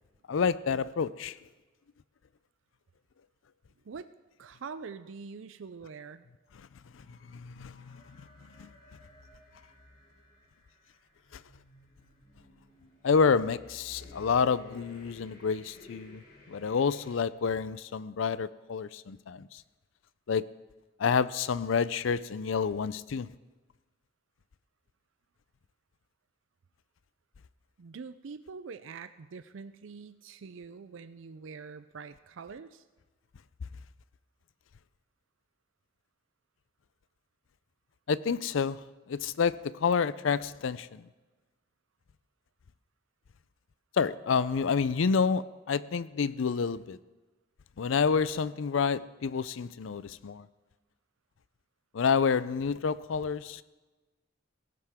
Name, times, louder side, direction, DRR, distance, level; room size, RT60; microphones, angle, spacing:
voice 1, 0.3-1.3 7.3-8.0 8.6-8.7 13.0-16.2 16.5-19.5 20.3-20.5 21.0-23.3 38.1-38.8 39.1-41.0 44.0-47.0 47.8-50.5 51.9-53.6, left 5 dB, 75° left, 0.5 m, -28 dB
voice 2, 4.4-6.3 27.8-32.8, right 5 dB, 75° right, 0.5 m, -44 dB
sound 1, 7.0-17.2, left 2 dB, 50° left, 3.6 m, -56 dB
17.5 x 15.5 x 3.6 m
head